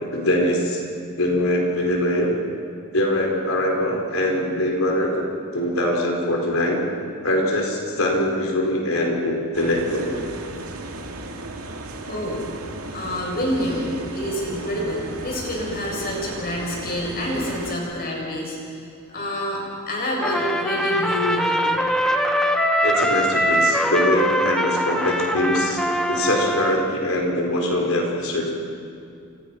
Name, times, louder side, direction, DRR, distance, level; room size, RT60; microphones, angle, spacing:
voice 1, 0.1-0.8 1.2-2.3 2.9-5.2 5.5-6.8 7.2-10.2 22.8-25.8 26.1-28.7, left 1 dB, 65° left, 0 dB, 4.6 m, -22 dB
sound 1, 9.5-17.8, right 2 dB, 85° right, 2.4 m, -35 dB
voice 2, 12.1-21.8, equal, 45° left, -2 dB, 7.8 m, -28 dB
Trumpet, 20.2-26.9, equal, 5° left, 1.5 m, -22 dB
29.5 x 27.5 x 6.0 m, 2.5 s
head